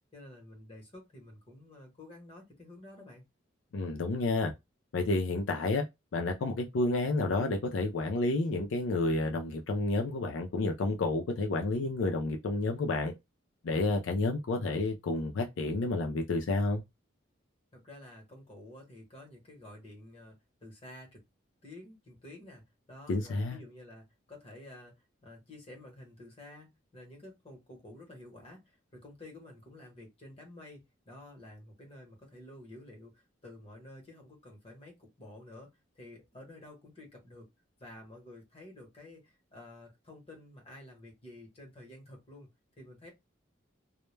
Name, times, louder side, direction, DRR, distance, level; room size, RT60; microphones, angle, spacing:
voice 1, 0.1-3.2 17.7-21.2 21.6-22.6 22.9-24.9 25.2-35.7 35.9-37.5 37.8-42.5 42.8-43.1, left 1 dB, 30° left, 0.9 m, -51 dB
voice 2, 3.7-4.5 4.9-5.8 6.1-13.1 13.6-16.8 23.1-23.6, left 2 dB, 75° left, 0.4 m, -30 dB
2.1 x 2.1 x 3.1 m
head